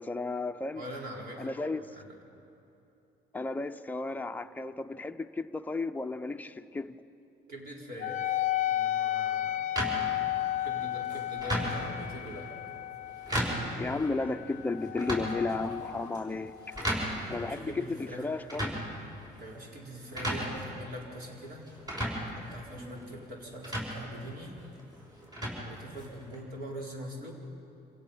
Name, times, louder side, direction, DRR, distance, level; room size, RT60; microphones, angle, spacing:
voice 1, 0.0-0.8 1.4-1.9 3.3-7.0 13.8-16.5 17.3-18.8, left 3 dB, 10° left, 6 dB, 0.6 m, -34 dB
voice 2, 0.7-1.5 1.9-2.1 7.5-9.6 10.6-12.5 17.3-18.3 19.4-21.7 22.2-24.6 25.6-27.3, equal, 60° right, -1 dB, 4.4 m, -43 dB
Wind instrument woodwind instrument, 8.0-16.9, left 12 dB, 50° left, 0.5 m, -34 dB
sound 1, 9.8-26.4, equal, 20° right, 6.1 m, -37 dB
27.0 x 17.0 x 5.7 m, 3.0 s
cardioid pair, 110°, 17 cm